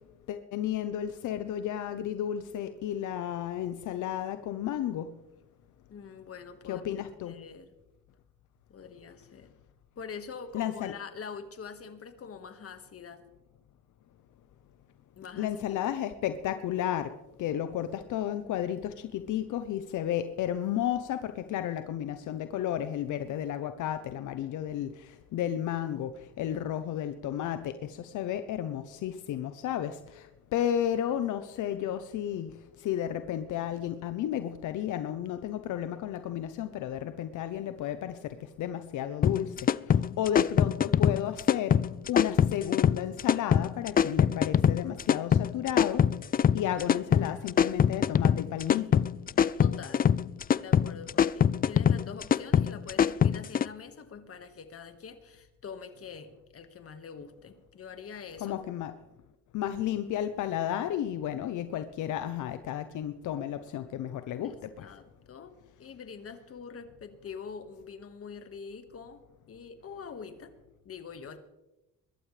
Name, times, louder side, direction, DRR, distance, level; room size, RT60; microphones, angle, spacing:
voice 1, 0.3-5.1 6.7-7.4 10.5-10.9 15.4-17.1 17.4-39.6 39.9-41.8 42.1-46.0 46.5-49.0 58.4-58.9 59.5-64.9, left 10 dB, 80° left, 10 dB, 0.8 m, -33 dB
voice 2, 5.9-7.7 8.7-9.5 9.9-13.2 15.2-15.8 30.5-30.7 49.6-50.1 50.5-58.6 64.4-65.5 65.8-69.2 69.5-70.5 70.8-71.4, left 6 dB, 50° left, 8 dB, 1.7 m, -44 dB
sound 1, 39.2-53.7, left 8 dB, 30° left, 0.4 m, -24 dB
22.5 x 12.5 x 3.3 m, 1.0 s
cardioid pair, 90°, 30 cm